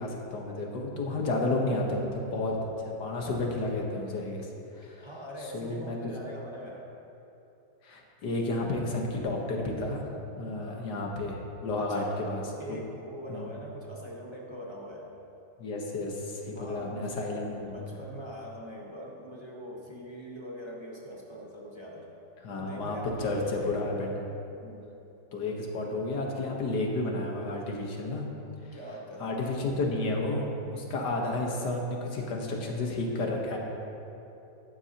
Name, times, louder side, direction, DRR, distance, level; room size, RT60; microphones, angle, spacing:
voice 1, 0.0-5.1 5.4-6.0 7.8-10.1 10.4-12.4 12.7-12.8 13.3-13.5 15.6-17.7 17.9-18.0 22.4-24.3 25.3-28.3 28.6-28.7 29.2-30.5 30.7-33.6, left 2 dB, 75° left, 0 dB, 1.9 m, -31 dB
voice 2, 5.0-6.9 10.5-10.8 11.8-12.2 12.6-15.1 16.6-17.4 17.7-22.1 22.5-23.9 24.6-24.9 28.7-29.4, equal, 20° right, -4 dB, 1.2 m, -42 dB
14.5 x 11.5 x 2.9 m, 2.9 s
omnidirectional pair, 1.8 m